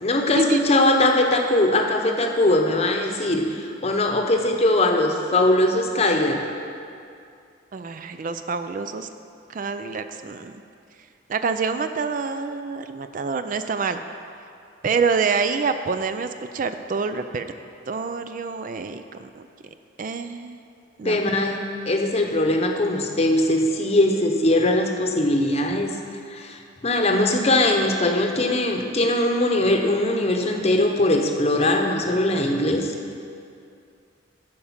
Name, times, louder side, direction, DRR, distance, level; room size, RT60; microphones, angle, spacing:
voice 1, 0.0-6.4 21.0-25.9 26.3-32.9, left 1 dB, 35° left, 3 dB, 0.8 m, -21 dB
voice 2, 7.7-9.1 9.5-10.6 11.3-14.0 14.8-17.5 17.9-19.4 20.0-20.6 21.0-21.2, right 5 dB, 45° right, 9 dB, 0.3 m, -26 dB
11.5 x 5.0 x 7.2 m, 2.4 s
head